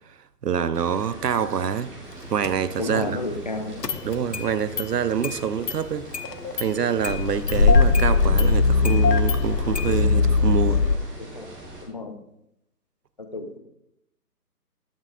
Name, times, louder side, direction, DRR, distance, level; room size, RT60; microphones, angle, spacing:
voice 1, 0.4-1.9 2.3-3.2 4.0-6.1 6.5-10.8, right 7 dB, 70° right, 14 dB, 0.8 m, -26 dB
sound 1, 0.7-11.8, right 1 dB, 20° right, 2.4 m, -41 dB
Engine starting, 2.4-2.5 3.8-4.5 4.8-4.9 5.2-5.3 5.7-5.8 6.1-6.7 7.0-11.0, left 4 dB, 75° left, 1.0 m, -20 dB
voice 2, 2.8-3.8 11.2-11.5 11.8-12.2 13.2-13.6, left 2 dB, 25° left, 6 dB, 0.6 m, -31 dB
12.5 x 10.5 x 2.5 m, 0.83 s
figure-of-eight pair, 150°, 49 cm